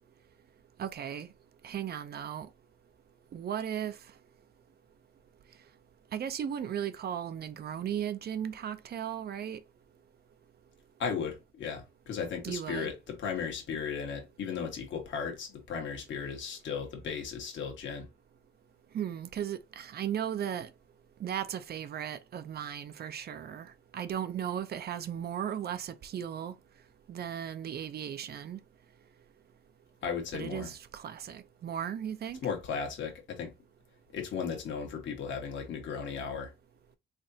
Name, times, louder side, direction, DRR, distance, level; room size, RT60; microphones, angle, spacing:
voice 1, 0.8-1.3 1.6-2.5 3.3-4.0 6.1-9.6 12.4-12.9 18.9-20.7 21.2-26.5 27.1-28.6 30.3-32.4, right 9 dB, 55° right, 0.6 m, -36 dB
voice 2, 11.0-18.1 30.0-30.7 32.4-33.5 34.1-36.5, left 6 dB, 70° left, 1.4 m, -36 dB
3.8 x 3.3 x 2.7 m
cardioid pair, 90°, 20 cm